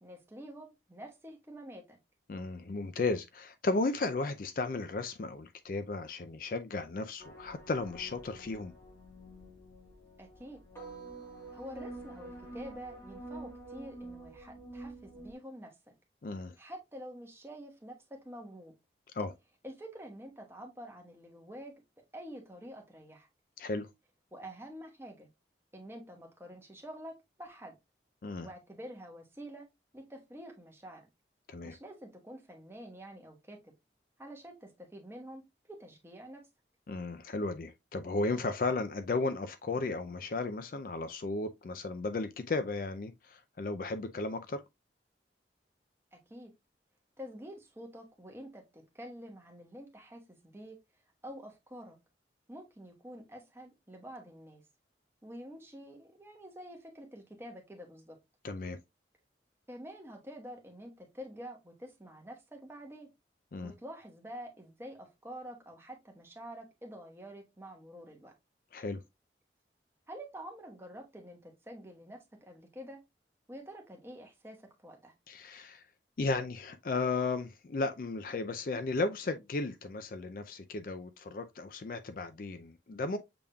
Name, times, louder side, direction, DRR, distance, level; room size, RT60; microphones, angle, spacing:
voice 1, 0.0-2.0 10.2-10.6 11.5-15.9 16.6-18.7 19.6-21.7 22.1-23.3 24.3-25.3 25.7-27.8 28.4-29.7 29.9-31.0 31.6-33.7 34.2-35.4 35.7-36.5 46.1-46.5 47.2-50.8 51.2-52.0 52.5-54.6 55.2-58.2 59.7-63.1 63.6-68.3 70.1-73.0 73.5-75.1, equal, 15° right, 1.1 m, -48 dB
voice 2, 2.3-8.7 16.2-16.5 19.1-19.3 23.6-23.9 28.2-28.5 31.5-31.8 36.9-44.6 58.4-58.8 63.5-63.7 68.7-69.0 75.3-75.8 76.2-83.2, left 3 dB, 50° left, 0.4 m, -34 dB
sound 1, 7.2-15.3, right 2 dB, 15° left, 1.5 m, -48 dB
6.8 x 3.5 x 2.2 m
head